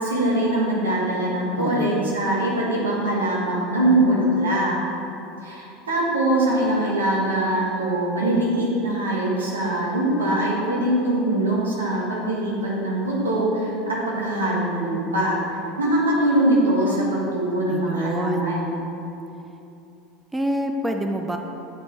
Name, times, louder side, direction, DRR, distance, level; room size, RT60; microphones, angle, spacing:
voice 1, 0.0-4.8 5.4-18.8, right 1 dB, 80° right, -5 dB, 1.4 m, -22 dB
voice 2, 1.5-2.3 17.7-18.5 20.3-21.4, right 1 dB, 10° right, 4 dB, 0.4 m, -27 dB
8.0 x 4.2 x 4.3 m, 2.9 s
figure-of-eight pair, 75°, 0 cm